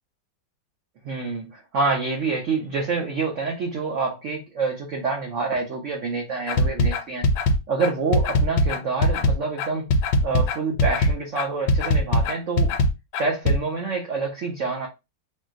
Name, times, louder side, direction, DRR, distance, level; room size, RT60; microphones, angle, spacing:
voice 1, 1.0-7.3 7.7-9.9 10.2-12.8 13.1-14.9, right 4 dB, 80° right, 0.6 m, -27 dB
sound 1, 6.5-13.6, left 1 dB, 80° left, 1.3 m, -20 dB
4.2 x 2.0 x 2.4 m
omnidirectional pair, 2.1 m